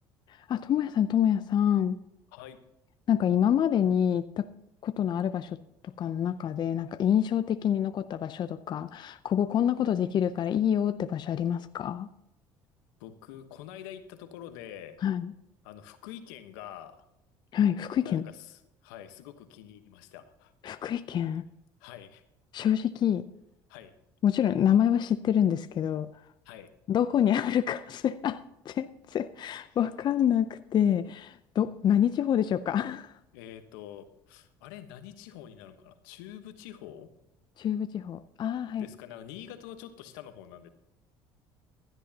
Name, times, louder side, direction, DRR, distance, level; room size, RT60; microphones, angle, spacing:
voice 1, 0.5-2.0 3.1-4.5 4.8-5.6 5.8-12.1 15.0-15.3 17.5-18.2 20.6-21.4 22.5-23.3 24.2-26.1 26.9-33.1 37.6-38.9, left 9 dB, 45° left, 11 dB, 0.6 m, -27 dB
voice 2, 13.0-15.0 15.6-17.0 18.0-20.5 21.8-22.2 23.7-23.9 26.4-26.7 29.7-29.8 33.3-37.1 38.8-40.7, left 11 dB, 85° left, 9 dB, 1.2 m, -46 dB
16.0 x 11.5 x 2.8 m, 0.82 s
supercardioid pair, 85°, 10 cm